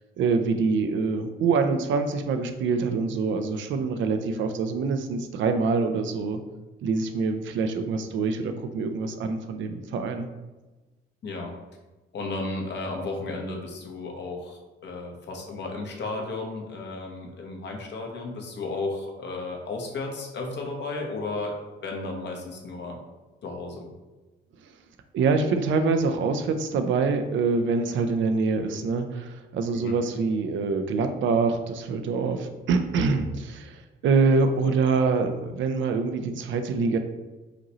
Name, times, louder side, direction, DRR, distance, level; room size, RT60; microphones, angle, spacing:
voice 1, 0.2-6.4 6.8-10.3 25.1-37.0, right 4 dB, 75° right, 7 dB, 0.5 m, -25 dB
voice 2, 11.2-11.5 12.1-21.5 21.8-23.0 23.4-23.9 29.7-30.0, left 3 dB, 60° left, 1 dB, 1.0 m, -34 dB
5.0 x 2.8 x 3.0 m, 1.2 s
cardioid pair, 90°, 20 cm